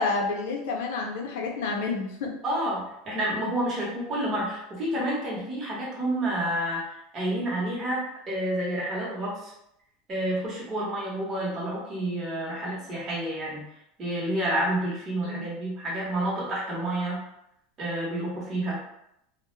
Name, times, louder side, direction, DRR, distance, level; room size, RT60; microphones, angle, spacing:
voice 1, 0.0-2.3 15.2-15.5, left 3 dB, 75° left, 1 dB, 0.5 m, -29 dB
voice 2, 2.4-9.5 10.1-13.6 14.0-17.2 17.8-18.8, right 1 dB, 30° right, -5 dB, 1.0 m, -29 dB
2.2 x 2.1 x 3.1 m, 0.79 s
supercardioid pair, 150°, 0 cm